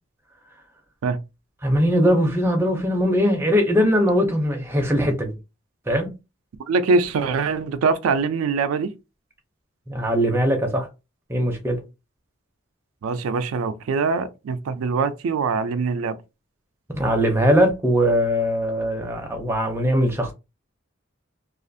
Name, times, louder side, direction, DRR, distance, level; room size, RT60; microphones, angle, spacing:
voice 1, 1.6-5.3 5.9-6.1 9.9-10.9 11.3-11.8 16.9-20.3, equal, 10° right, 0.5 m, -20 dB
voice 2, 6.7-8.9 13.0-16.2, right 4 dB, 90° right, 0.4 m, -23 dB
2.4 x 2.4 x 2.6 m
head